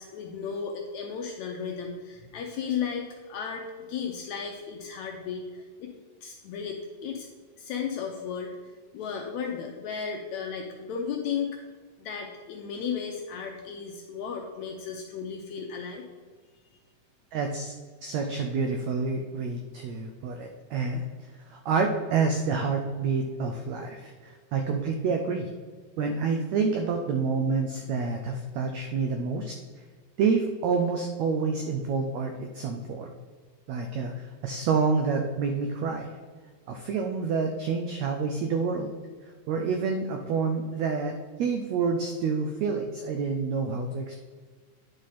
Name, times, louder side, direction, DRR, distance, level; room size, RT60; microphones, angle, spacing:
voice 1, 0.0-3.6 3.9-5.9 6.2-7.3 7.6-8.5 8.9-11.6 12.0-16.1, left 6 dB, 80° left, 1 dB, 1.7 m, -34 dB
voice 2, 17.3-17.7 18.0-25.5 26.0-29.5 30.2-33.1 33.7-36.1 36.7-38.9 39.5-41.1 41.4-44.2, right 5 dB, 85° right, 4 dB, 1.5 m, -28 dB
9.6 x 5.1 x 4.2 m, 1.5 s
omnidirectional pair, 3.9 m